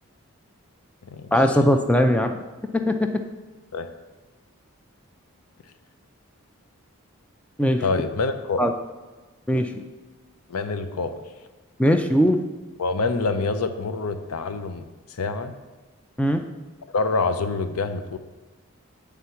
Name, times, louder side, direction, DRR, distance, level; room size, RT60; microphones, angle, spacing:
voice 1, 1.3-2.3 2.7-3.1 7.6-7.8 8.6-8.7 9.5-9.8 11.8-12.4 16.2-16.4, equal, 5° left, 6 dB, 0.4 m, -20 dB
voice 2, 7.8-8.6 10.5-11.2 12.8-15.6 16.9-18.2, left 3 dB, 85° left, 9 dB, 0.6 m, -26 dB
9.3 x 3.5 x 5.6 m, 1.3 s
head